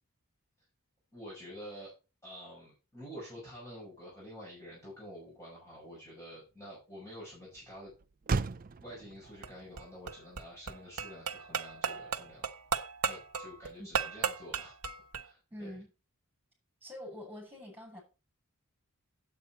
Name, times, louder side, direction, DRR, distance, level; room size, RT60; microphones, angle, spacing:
voice 1, 1.1-1.9 2.2-7.9 8.8-12.5 13.0-14.7 15.2-15.8, equal, 15° left, 6.1 m, -48 dB
Motor vehicle (road), 4.1-12.8, right 4 dB, 40° right, 0.5 m, -42 dB
sound 1, 9.3-15.3, right 6 dB, 85° right, 1.0 m, -36 dB
voice 2, 15.5-15.9 16.8-18.0, left 1 dB, 10° right, 7.5 m, -45 dB
9.3 x 8.5 x 4.3 m
head